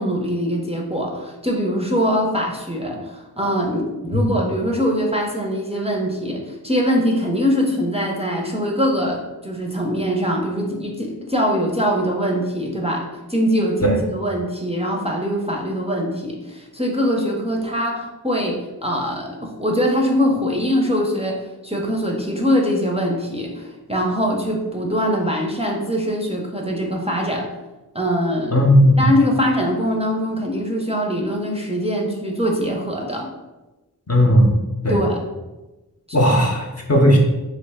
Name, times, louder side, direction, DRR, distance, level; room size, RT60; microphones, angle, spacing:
voice 1, 0.0-27.5 27.9-28.7 29.0-33.3 34.9-35.3, equal, 15° right, -1 dB, 0.5 m, -22 dB
voice 2, 28.5-29.0 34.1-34.5 34.8-35.0 36.1-37.2, equal, 40° left, 0 dB, 0.7 m, -15 dB
3.2 x 2.7 x 3.4 m, 1.1 s
wide cardioid pair, 40°, 38 cm